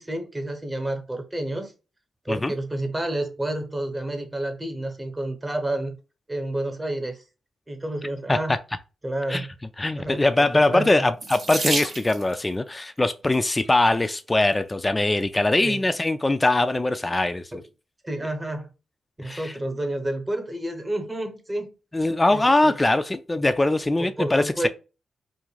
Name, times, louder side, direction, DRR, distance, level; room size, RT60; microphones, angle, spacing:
voice 1, 0.0-1.7 2.2-6.0 6.3-7.2 7.7-8.6 9.0-9.5 10.0-11.0 15.6-15.8 17.5-17.6 18.0-18.7 19.2-21.7 22.3-22.8 24.0-24.7, right 1 dB, 20° right, 0.9 m, -30 dB
voice 2, 9.8-17.5 19.2-19.6 21.9-24.7, left 2 dB, 25° left, 0.3 m, -22 dB
Water tap faucet / Sink (filling or washing), 11.2-12.4 13.5-13.9 14.6-14.7 15.0-15.1, right 3 dB, 55° right, 0.8 m, -30 dB
2.4 x 2.2 x 3.1 m
supercardioid pair, 45°, 0 cm